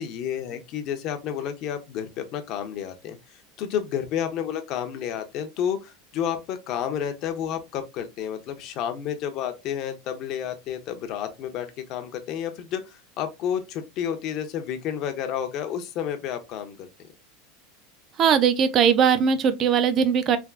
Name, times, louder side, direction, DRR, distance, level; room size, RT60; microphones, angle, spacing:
voice 1, 0.0-16.9, left 9 dB, 45° left, 0.6 m, -31 dB
voice 2, 18.2-20.4, right 7 dB, 35° right, 0.4 m, -20 dB
3.3 x 2.3 x 2.3 m
supercardioid pair, 145°, 0 cm